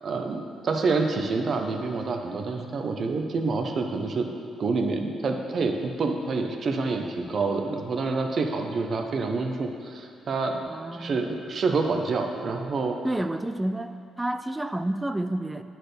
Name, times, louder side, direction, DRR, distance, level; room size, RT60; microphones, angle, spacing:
voice 1, 0.0-4.3 4.6-10.6 10.9-13.0, right 3 dB, 50° right, 4 dB, 0.9 m, -27 dB
voice 2, 10.7-11.2 13.0-13.9 14.2-15.6, right 1 dB, 10° right, 9 dB, 0.4 m, -29 dB
9.8 x 4.5 x 6.7 m, 2.5 s
cardioid pair, 90°, 0 cm